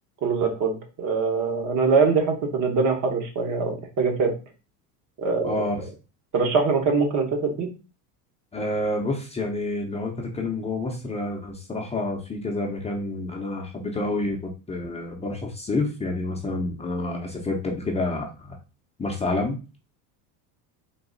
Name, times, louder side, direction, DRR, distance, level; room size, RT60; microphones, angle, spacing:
voice 1, 0.2-4.3 5.2-5.7 6.3-7.7, right 4 dB, 45° right, 4 dB, 1.2 m, -23 dB
voice 2, 5.4-5.8 8.5-18.5 19.0-19.6, left 2 dB, 15° left, 0 dB, 0.7 m, -28 dB
3.9 x 2.7 x 3.9 m, 0.31 s
supercardioid pair, 120°, 43 cm